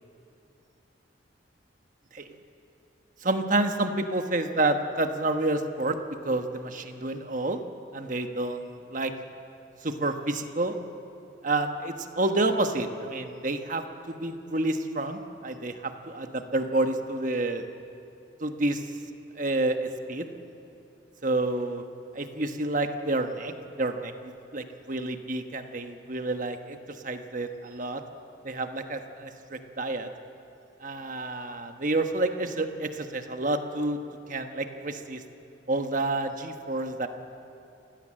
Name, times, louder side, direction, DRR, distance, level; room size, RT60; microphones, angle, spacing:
voice 1, 3.2-6.0 6.2-7.6 7.9-9.1 9.8-10.8 11.4-17.6 18.4-18.8 19.4-20.3 21.2-21.8 22.1-24.1 24.5-28.0 28.4-30.1 30.8-34.0 34.3-35.2 35.7-37.1, right 2 dB, 40° right, 6 dB, 1.3 m, -29 dB
28.5 x 16.5 x 7.7 m, 2.8 s
head